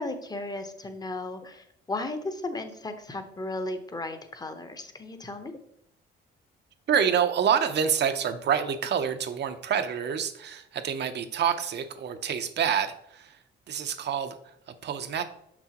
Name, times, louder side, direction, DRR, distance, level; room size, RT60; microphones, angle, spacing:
voice 1, 0.0-5.5, left 2 dB, 20° left, 7 dB, 0.8 m, -35 dB
voice 2, 6.9-15.2, right 8 dB, 60° right, 8 dB, 0.7 m, -27 dB
6.4 x 6.1 x 2.9 m, 0.75 s
cardioid pair, 90°, 20 cm